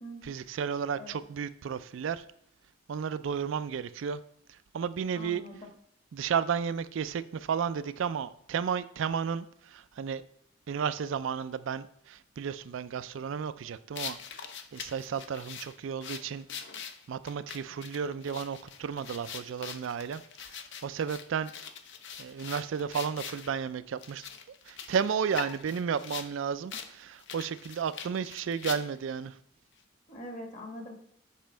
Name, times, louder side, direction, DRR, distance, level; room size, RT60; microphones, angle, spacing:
voice 1, 0.2-2.3 2.9-4.2 4.5-5.4 6.1-10.2 10.7-16.4 17.1-21.5 22.2-24.3 24.6-29.4, right 7 dB, 65° right, 0.4 m, -33 dB
voice 2, 5.1-5.6 30.1-30.9, left 1 dB, 35° left, 1.5 m, -43 dB
sound 1, 13.9-23.5 24.0-26.3 26.7-26.9 27.2-29.1, left 7 dB, 60° left, 0.7 m, -42 dB
7.4 x 5.1 x 4.5 m
head